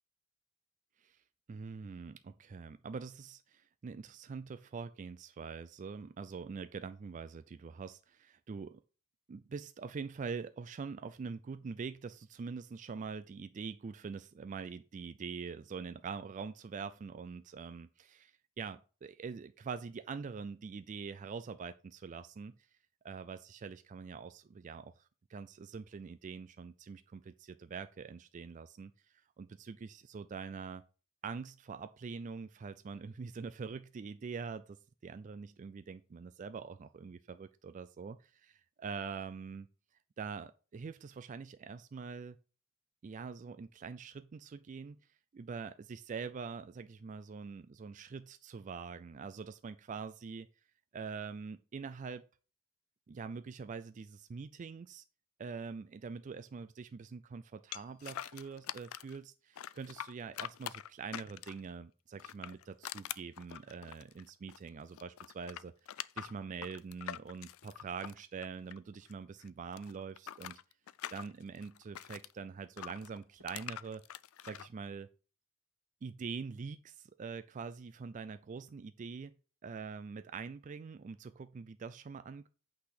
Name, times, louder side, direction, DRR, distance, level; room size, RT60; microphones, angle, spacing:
voice 1, 1.5-8.8 9.3-22.7 23.0-30.8 31.2-39.7 40.2-42.4 43.0-45.0 45.3-50.5 50.9-52.2 53.1-55.0 55.4-70.6 71.1-74.0 74.4-75.1 76.0-79.3 79.6-82.5, right 5 dB, 35° right, 11 dB, 0.3 m, -44 dB
sound 1, 57.7-59.2 59.5-61.7 62.1-64.7 64.9-69.1 69.4-72.3 72.8-74.7, left 11 dB, 70° left, 0.4 m, -45 dB
8.5 x 4.0 x 6.4 m, 0.37 s
head